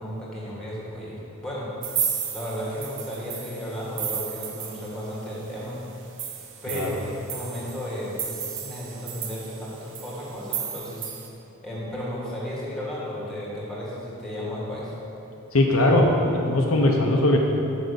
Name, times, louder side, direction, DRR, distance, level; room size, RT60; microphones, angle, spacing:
voice 1, 0.0-1.7 2.3-5.8 6.6-11.1 11.6-14.9, equal, 5° left, -6 dB, 1.8 m, -34 dB
sound 1, 1.8-5.3 5.6-5.7 6.0-11.3, right 8 dB, 60° right, 0.7 m, -34 dB
voice 2, 15.5-17.4, left 1 dB, 65° left, 0 dB, 0.7 m, -20 dB
6.4 x 5.2 x 6.8 m, 3.0 s
head